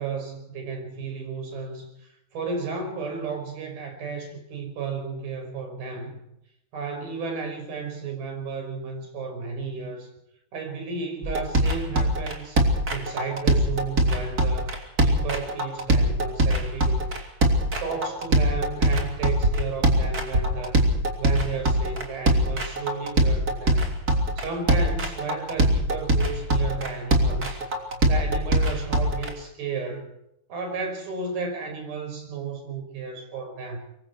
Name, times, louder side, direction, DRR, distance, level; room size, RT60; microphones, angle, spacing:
voice 1, 0.0-6.2 6.7-10.1 10.5-12.6 12.9-14.7 15.0-17.1 17.8-20.8 21.2-23.9 24.2-27.6 28.1-30.1 30.5-33.8, right 5 dB, 75° right, 4 dB, 7.4 m, -33 dB
sound 1, 11.2-29.3, right 1 dB, 25° right, 3.3 m, -22 dB
25.5 x 22.5 x 4.6 m, 0.80 s
omnidirectional pair, 4.4 m